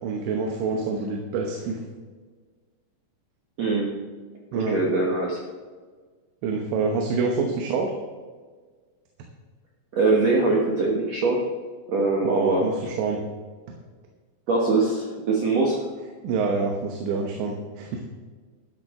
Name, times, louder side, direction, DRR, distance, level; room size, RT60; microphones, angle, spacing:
voice 1, 0.0-1.8 4.5-4.8 6.4-7.9 12.2-13.2 16.2-18.0, right 4 dB, 85° right, 2 dB, 3.3 m, -26 dB
voice 2, 3.6-3.9 4.5-5.4 9.9-11.4 11.9-12.6 14.5-15.8, right 3 dB, 65° right, -2 dB, 1.6 m, -22 dB
13.0 x 10.5 x 3.7 m, 1.5 s
omnidirectional pair, 5.0 m